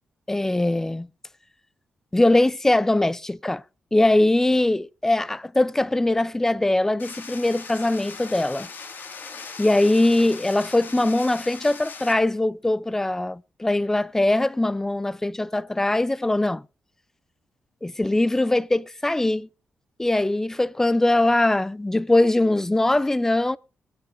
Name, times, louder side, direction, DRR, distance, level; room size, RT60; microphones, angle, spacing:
voice 1, 0.3-1.1 2.1-3.6 3.9-8.7 9.6-16.6 17.8-19.5 20.0-23.6, left 2 dB, 10° left, 0.4 m, -21 dB
sound 1, 7.0-12.1, left 5 dB, 60° left, 1.9 m, -39 dB
22.5 x 8.7 x 2.5 m
cardioid pair, 90°, 4 cm